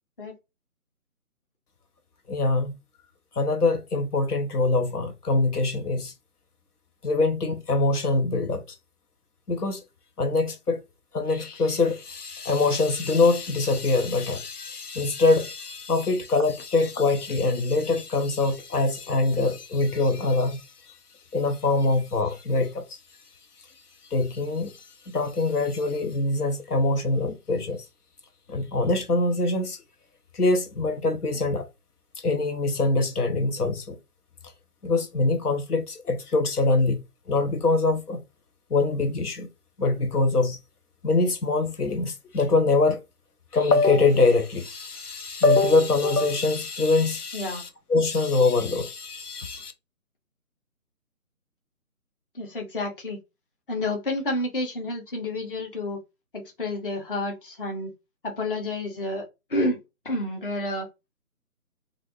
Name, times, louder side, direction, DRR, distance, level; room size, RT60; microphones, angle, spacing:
voice 1, 2.3-2.7 3.4-6.1 7.0-8.6 9.5-9.8 10.2-10.8 11.1-20.7 21.3-23.0 24.1-24.8 25.1-27.8 28.5-29.8 30.3-31.7 32.2-34.0 34.8-38.2 38.7-39.5 39.8-40.6 41.0-43.0 43.5-49.7, left 3 dB, 90° left, 0.8 m, -24 dB
voice 2, 52.3-53.2 53.7-56.0 56.3-57.9 58.2-59.8 60.0-60.9, left 2 dB, 35° left, 0.8 m, -30 dB
3.1 x 2.6 x 2.7 m
figure-of-eight pair, 155°, 45 cm